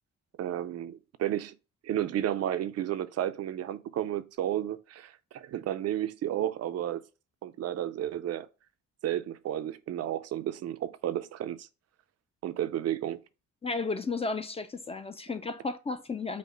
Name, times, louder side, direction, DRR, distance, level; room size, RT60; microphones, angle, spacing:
voice 1, 0.4-1.6 1.8-7.0 7.4-8.5 9.0-11.7 12.4-13.2, right 11 dB, 55° right, 0.4 m, -32 dB
voice 2, 13.6-16.4, left 3 dB, 20° left, 0.4 m, -33 dB
5.3 x 2.0 x 3.7 m
cardioid pair, 90°, 30 cm